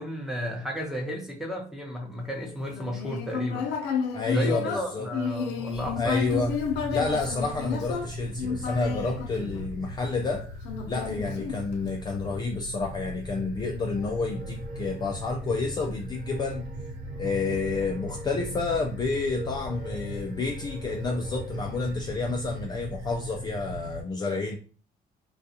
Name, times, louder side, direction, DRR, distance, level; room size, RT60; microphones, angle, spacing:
voice 1, 0.0-3.7 4.3-6.3, equal, 5° right, 0 dB, 0.8 m, -33 dB
Human voice, 2.7-10.1 10.6-12.1, left 6 dB, 90° left, 0.6 m, -32 dB
voice 2, 4.1-5.1 6.0-6.5 6.9-10.5 10.9-16.7 17.2-24.6, left 3 dB, 25° left, 2 dB, 0.3 m, -29 dB
sound 1, 5.7-24.0, right 1 dB, 80° right, 1.1 m, -38 dB
sound 2, 13.9-22.1, right 1 dB, 50° right, 0.6 m, -46 dB
2.4 x 2.3 x 2.7 m, 0.40 s
cardioid pair, 110°, 17 cm